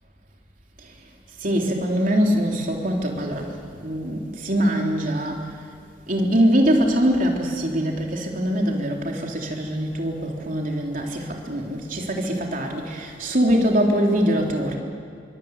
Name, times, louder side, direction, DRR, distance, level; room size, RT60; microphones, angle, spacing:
voice 1, 1.4-3.5 3.8-5.4 6.1-14.7, equal, 45° right, 1 dB, 3.6 m, -23 dB
26.5 x 24.0 x 8.4 m, 2.3 s
head